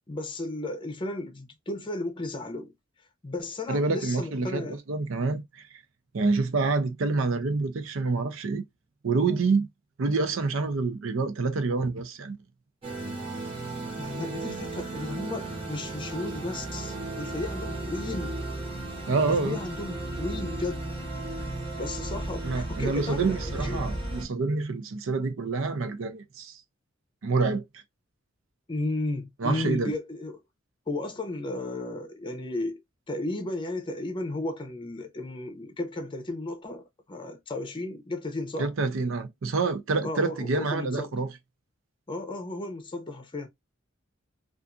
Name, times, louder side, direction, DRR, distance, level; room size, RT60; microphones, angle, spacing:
voice 1, 0.1-2.7 3.2-4.8 14.0-18.4 19.3-20.8 21.8-23.9 28.7-30.4 30.9-32.8 33.1-38.7 40.0-41.3 42.1-43.5, left 2 dB, 25° left, 0.7 m, -34 dB
voice 2, 3.7-5.6 6.1-8.6 9.0-9.7 10.0-12.4 19.1-19.6 22.4-26.6 27.2-27.6 29.4-29.9 38.6-41.3, right 3 dB, 80° right, 0.5 m, -27 dB
sound 1, 12.8-24.3, right 2 dB, 30° right, 0.9 m, -35 dB
2.6 x 2.5 x 2.3 m
head